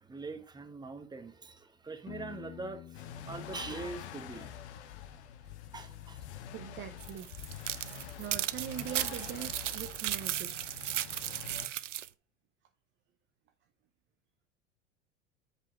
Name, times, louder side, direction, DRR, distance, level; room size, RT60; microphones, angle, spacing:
voice 1, 0.0-4.5 5.7-6.2, right 4 dB, 10° right, 1.0 m, -43 dB
Piano, 2.1-5.8, left 13 dB, 30° left, 0.4 m, -51 dB
sound 1, 2.9-11.7, left 9 dB, 65° left, 1.0 m, -46 dB
voice 2, 6.5-7.3 8.2-10.7, right 11 dB, 30° right, 0.7 m, -42 dB
sound 2, 7.0-12.1, right 12 dB, 80° right, 0.5 m, -36 dB
7.4 x 5.2 x 4.0 m
figure-of-eight pair, 80°, 36 cm